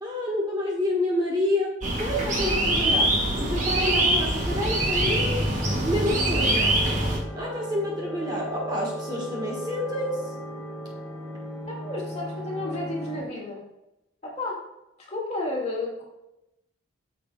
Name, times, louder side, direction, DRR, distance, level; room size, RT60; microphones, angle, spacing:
voice 1, 0.0-1.7 2.0-5.4 5.8-6.8 7.3-10.2, left 1 dB, 20° right, -3 dB, 1.4 m, -28 dB
sound 1, 1.8-7.2, right 1 dB, 35° right, 1.4 m, -24 dB
sound 2, 3.7-13.2, equal, 5° left, 1.0 m, -37 dB
voice 2, 11.8-13.6 14.2-14.6 15.0-16.0, left 2 dB, 30° left, -2 dB, 2.0 m, -32 dB
9.6 x 6.8 x 2.3 m, 0.90 s
head